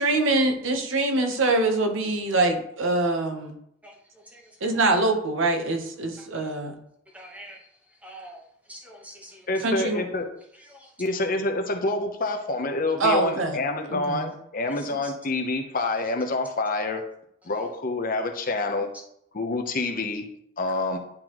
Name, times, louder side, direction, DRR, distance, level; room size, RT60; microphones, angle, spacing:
voice 1, 0.0-3.6 4.6-6.8 9.6-10.0 13.0-13.6 13.9-14.2, right 2 dB, 75° right, 5 dB, 0.9 m, -24 dB
voice 2, 3.8-4.8 7.1-7.7 8.0-8.4 8.7-9.5 10.6-10.9 14.6-15.1 20.7-20.8, equal, 5° right, 0 dB, 1.1 m, -46 dB
voice 3, 9.5-10.3 11.0-17.0 17.4-18.9 19.3-20.2 20.6-21.0, left 2 dB, 45° left, 5 dB, 0.8 m, -27 dB
10.5 x 3.9 x 3.0 m, 0.72 s
head